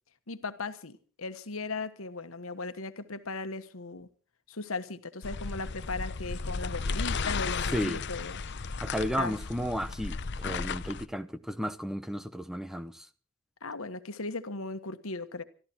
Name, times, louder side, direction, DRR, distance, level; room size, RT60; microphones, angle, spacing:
voice 1, 0.3-4.1 4.5-8.4 9.2-9.4 13.6-15.4, left 3 dB, 80° left, 1.4 m, -37 dB
sound 1, 5.2-11.1, left 4 dB, 55° left, 0.7 m, -34 dB
voice 2, 8.8-13.1, equal, ahead, 0.8 m, -33 dB
23.5 x 13.5 x 4.5 m
head